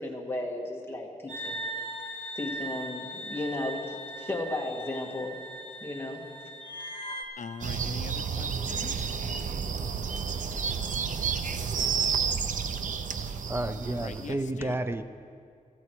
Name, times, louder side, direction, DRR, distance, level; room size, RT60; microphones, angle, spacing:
voice 1, 0.0-1.6 2.3-5.4 5.8-6.2, left 2 dB, 15° left, -1 dB, 1.7 m, -34 dB
sound 1, 1.3-7.2, right 1 dB, 35° left, 1.5 m, -39 dB
voice 2, 7.4-9.2 13.8-14.8, left 6 dB, 70° left, 11 dB, 0.5 m, -42 dB
sound 2, 7.6-14.3, right 6 dB, 80° right, 0.7 m, -31 dB
voice 3, 13.5-15.0, right 1 dB, 20° right, 10 dB, 0.5 m, -31 dB
16.5 x 13.5 x 4.7 m, 2.2 s
wide cardioid pair, 160°, 13 cm